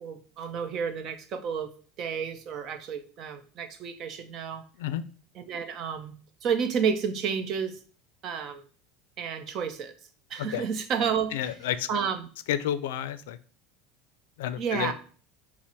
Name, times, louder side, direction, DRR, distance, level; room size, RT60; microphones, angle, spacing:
voice 1, 0.0-1.7 2.0-4.6 5.3-6.1 6.4-7.8 8.2-8.6 9.2-9.9 10.3-11.6 11.9-12.3 14.6-14.9, right 7 dB, 45° right, 8 dB, 0.7 m, -31 dB
voice 2, 11.3-11.9 12.5-13.4 14.4-14.9, left 11 dB, 85° left, 13 dB, 0.4 m, -30 dB
5.8 x 2.1 x 4.3 m, 0.41 s
supercardioid pair, 130°, 0 cm